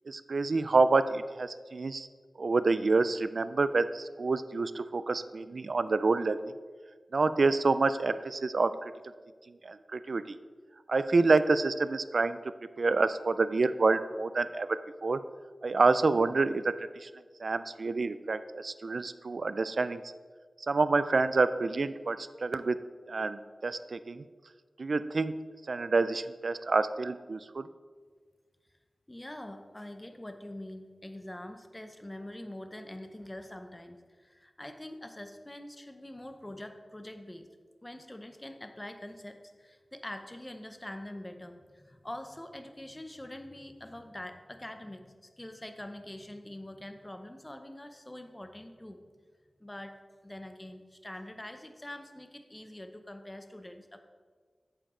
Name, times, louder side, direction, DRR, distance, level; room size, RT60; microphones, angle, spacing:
voice 1, 0.1-2.1 2.4-6.5 7.1-8.9 9.5-10.4 10.9-12.4 12.8-15.2 15.6-17.1 17.4-20.0 20.7-22.8 23.1-24.2 24.8-25.4 25.7-27.7, right 3 dB, 65° right, 13 dB, 0.3 m, -28 dB
voice 2, 29.1-37.5 37.8-49.0 49.6-49.9 50.2-54.0, left 1 dB, 20° left, 7 dB, 0.7 m, -44 dB
8.8 x 7.2 x 3.8 m, 1.5 s
wide cardioid pair, 80°, 0 cm